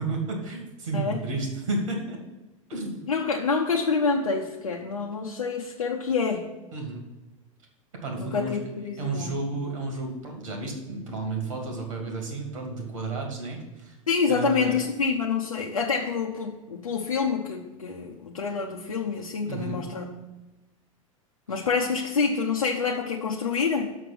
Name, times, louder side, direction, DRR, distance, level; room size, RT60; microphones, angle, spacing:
voice 1, 0.0-2.2 2.7-3.0 6.7-7.0 7.9-8.6 9.0-13.9 14.3-14.8 19.4-19.8 21.5-21.6, right 3 dB, 70° right, 2 dB, 2.5 m, -32 dB
voice 2, 3.1-6.5 8.2-9.4 14.1-20.2 21.5-23.9, left 5 dB, 80° left, -1 dB, 0.9 m, -27 dB
6.3 x 6.1 x 5.9 m, 1.1 s
figure-of-eight pair, 85°, 18 cm